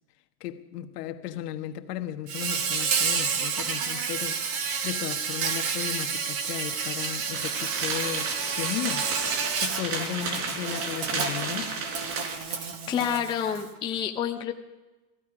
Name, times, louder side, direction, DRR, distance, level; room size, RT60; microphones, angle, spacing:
voice 1, 0.4-9.1 9.6-11.9, left 11 dB, 75° left, 1.4 m, -35 dB
Insect, 2.3-13.7, right 6 dB, 30° right, 1.1 m, -30 dB
sound 1, 7.3-12.3, right 4 dB, 60° right, 4.3 m, -33 dB
voice 2, 12.5-14.5, left 8 dB, 10° left, 0.5 m, -29 dB
18.0 x 15.0 x 4.9 m
supercardioid pair, 160°, 48 cm